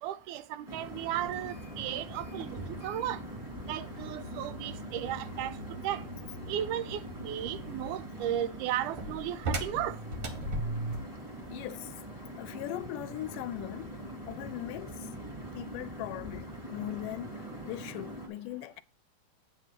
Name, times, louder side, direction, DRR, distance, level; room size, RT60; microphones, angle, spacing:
voice 1, 0.0-3.2 3.7-6.0 6.5-10.0, right 12 dB, 80° right, 2.0 m, -35 dB
sound 1, 0.7-18.3, right 1 dB, 15° right, 1.7 m, -43 dB
sound 2, 1.3-11.2, right 1 dB, 55° right, 1.7 m, -40 dB
voice 2, 11.5-12.1 12.4-13.9 14.3-15.1 15.5-18.8, left 14 dB, 85° left, 2.1 m, -40 dB
8.9 x 4.1 x 6.6 m
omnidirectional pair, 3.7 m